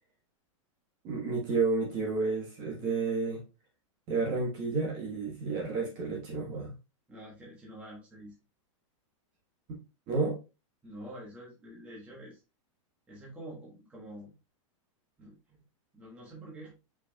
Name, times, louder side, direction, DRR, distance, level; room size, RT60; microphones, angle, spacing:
voice 1, 1.0-3.4 4.1-6.7 10.1-10.4, right 4 dB, 25° right, 1.5 m, -31 dB
voice 2, 7.1-8.3 10.8-12.4 13.1-14.3 15.2-15.6 15.9-16.7, right 1 dB, 5° right, 1.3 m, -47 dB
5.0 x 4.5 x 2.4 m
supercardioid pair, 175°, 17 cm